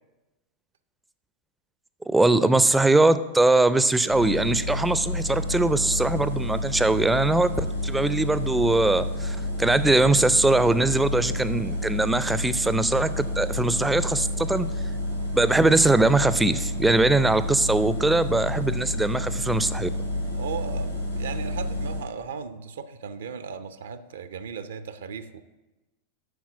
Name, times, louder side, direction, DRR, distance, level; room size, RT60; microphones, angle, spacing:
voice 1, 2.1-14.7 15.3-19.9, right 2 dB, 5° right, 14 dB, 0.4 m, -21 dB
sound 1, 4.1-22.0, left 1 dB, 90° left, 3.9 m, -29 dB
voice 2, 20.4-25.4, right 6 dB, 65° right, 12 dB, 0.5 m, -36 dB
8.1 x 6.0 x 7.2 m, 1.1 s
figure-of-eight pair, 90°, 0 cm